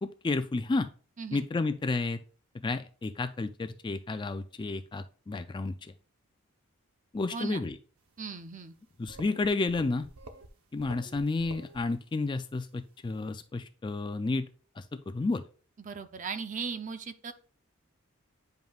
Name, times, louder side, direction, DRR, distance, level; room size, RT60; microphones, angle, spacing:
voice 1, 0.0-0.9 1.3-2.2 2.6-5.9 7.1-7.8 9.0-10.0 10.7-14.5 14.8-15.4, left 3 dB, 20° left, 9 dB, 0.3 m, -31 dB
voice 2, 7.3-7.6 8.2-8.7 15.8-17.3, right 5 dB, 35° right, 9 dB, 0.5 m, -37 dB
sound 1, 8.8-8.9 9.1-10.5 10.8-11.9, right 2 dB, 80° right, 0.8 m, -48 dB
9.1 x 5.3 x 2.3 m, 0.39 s
head